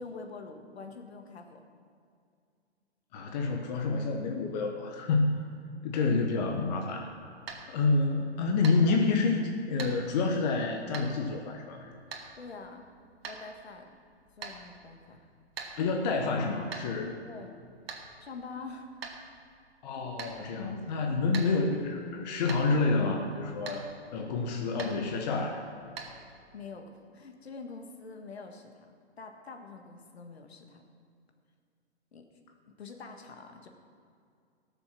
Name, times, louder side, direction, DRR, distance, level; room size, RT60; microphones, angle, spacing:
voice 1, 0.0-1.6 6.0-6.2 12.3-12.8 13.3-13.8 14.4-15.3 17.2-17.5 18.2-19.0 26.5-28.9 29.2-30.8 32.1-32.2 32.7-33.7, left 4 dB, 65° left, 4 dB, 1.7 m, -45 dB
voice 2, 3.1-5.5 5.8-7.3 7.7-9.4 9.7-11.9 15.8-17.2 19.8-25.7, left 3 dB, 40° left, 3 dB, 1.2 m, -28 dB
sound 1, 6.8-26.6, right 4 dB, 60° right, 1.7 m, -47 dB
17.5 x 7.0 x 6.1 m, 2.3 s
figure-of-eight pair, 125°, 33 cm